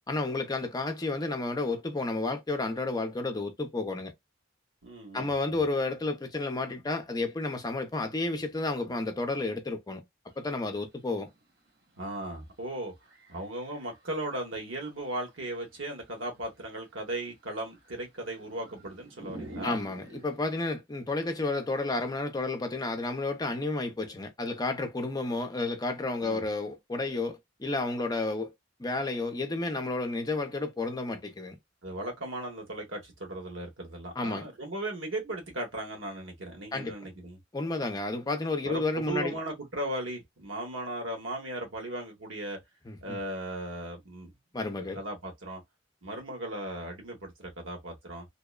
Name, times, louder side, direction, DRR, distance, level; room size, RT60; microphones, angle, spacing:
voice 1, 0.1-4.1 5.1-10.1 10.4-11.3 19.6-28.5 28.8-31.6 34.2-34.5 36.7-37.1 37.5-39.4 42.9-43.2 44.5-45.0, left 2 dB, 20° left, 0.6 m, -31 dB
voice 2, 4.8-5.6 12.0-12.9 13.3-19.8 26.2-26.4 31.8-37.4 38.6-42.6 43.0-44.3 44.8-45.6 46.0-48.3, right 1 dB, 80° right, 1.2 m, -37 dB
sound 1, 10.3-10.4 10.6-12.5 13.0-14.5 15.2-20.5, right 1 dB, 60° right, 1.0 m, -48 dB
2.8 x 2.1 x 2.3 m
head